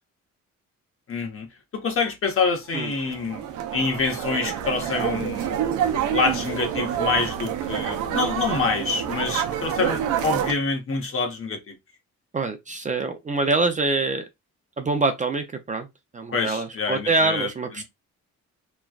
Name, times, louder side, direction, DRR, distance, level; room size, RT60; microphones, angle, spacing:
voice 1, 1.1-1.5 1.7-3.4 3.7-5.5 6.1-11.7 16.3-17.5 17.8-17.9, left 4 dB, 45° left, 1.1 m, -26 dB
sound 1, 2.8-10.5, right 9 dB, 85° right, 0.6 m, -27 dB
voice 2, 12.3-14.2 14.8-15.9 16.1-17.8, right 3 dB, 25° right, 0.5 m, -25 dB
3.1 x 2.2 x 2.4 m
cardioid pair, 90°, 30 cm